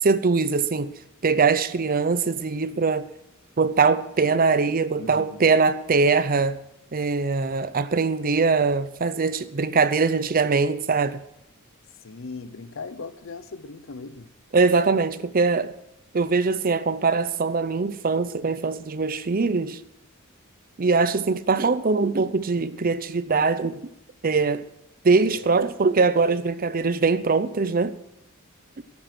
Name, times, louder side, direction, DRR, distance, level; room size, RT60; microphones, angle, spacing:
voice 1, 0.0-0.9 1.2-3.1 3.6-6.6 6.9-11.2 14.5-15.7 16.1-19.8 20.8-23.8 24.2-24.6 25.0-27.9, right 4 dB, 40° right, 0.6 m, -22 dB
voice 2, 5.0-5.4 12.0-14.3 25.3-25.9, left 4 dB, 65° left, 0.7 m, -39 dB
14.5 x 11.5 x 6.0 m
head